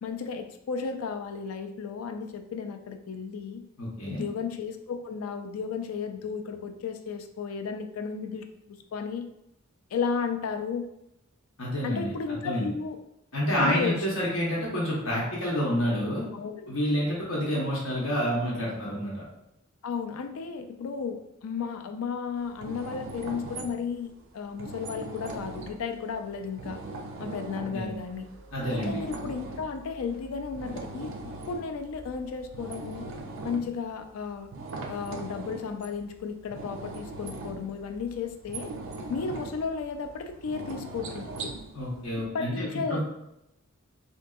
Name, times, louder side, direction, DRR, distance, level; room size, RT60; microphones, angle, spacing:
voice 1, 0.0-3.6 4.1-8.5 8.9-9.3 9.9-10.9 11.8-13.0 13.6-14.1 16.3-16.7 19.8-26.8 27.2-28.3 28.7-31.1 31.5-33.1 33.4-34.5 34.9-38.7 39.1-41.5 42.3-43.0, left 5 dB, 85° left, 6 dB, 0.4 m, -34 dB
voice 2, 3.8-4.2 11.6-12.7 13.3-16.2 16.7-19.2 27.7-27.9 28.5-29.0 41.7-43.0, equal, 70° left, -5 dB, 0.9 m, -28 dB
sound 1, 22.4-42.2, right 3 dB, 65° right, 0.4 m, -40 dB
3.6 x 2.7 x 2.3 m, 0.85 s
head